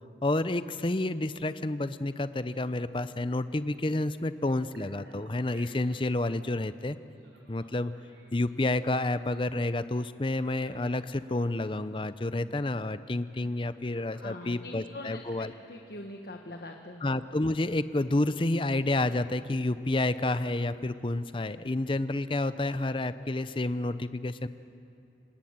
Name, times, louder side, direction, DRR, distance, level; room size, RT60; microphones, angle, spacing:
voice 1, 0.2-7.0 7.5-7.9 8.3-15.5 17.0-24.5, left 2 dB, 30° left, 13 dB, 0.6 m, -29 dB
Telephone, 4.4-6.2 7.1-9.4 10.2-11.6 13.3-13.6 13.9-14.7 15.1-15.6, right 2 dB, 85° right, 5.9 m, -60 dB
voice 2, 14.2-17.0, left 1 dB, 60° left, 3 dB, 1.3 m, -43 dB
27.5 x 18.5 x 8.8 m, 2.7 s
head